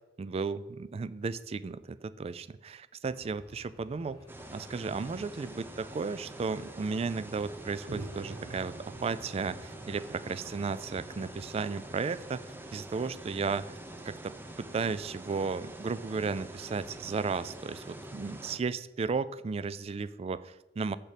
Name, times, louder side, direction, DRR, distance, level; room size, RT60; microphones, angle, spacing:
voice 1, 0.2-4.2 4.5-8.7 9.0-12.4 12.7-13.7 14.1-21.0, right 4 dB, 35° right, 17 dB, 0.3 m, -34 dB
sound 1, 3.1-11.7, equal, 20° left, 1.2 m, -57 dB
sound 2, 4.3-18.6, right 1 dB, 10° right, 0.7 m, -46 dB
sound 3, 7.9-12.5, right 2 dB, 70° right, 0.8 m, -47 dB
7.3 x 6.6 x 5.0 m, 1.0 s
head